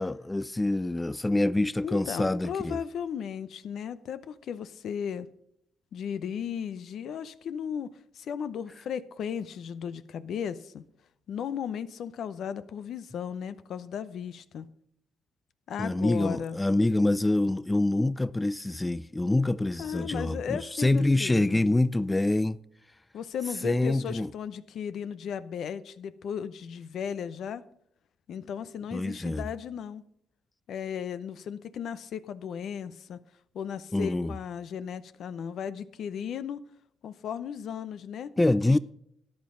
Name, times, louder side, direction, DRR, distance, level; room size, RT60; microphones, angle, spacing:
voice 1, 0.0-2.8 15.8-22.6 23.6-24.3 28.9-29.5 33.9-34.3 38.4-38.8, left 2 dB, 15° left, 0.3 m, -26 dB
voice 2, 1.8-5.3 5.9-7.9 8.1-10.9 11.3-14.7 15.7-16.6 19.8-21.7 23.1-27.6 28.3-30.0 30.7-33.2 33.5-36.6 37.0-38.3 38.7-38.8, left 8 dB, 70° left, 0.7 m, -35 dB
13.5 x 9.6 x 3.8 m
cardioid pair, 75°, 0 cm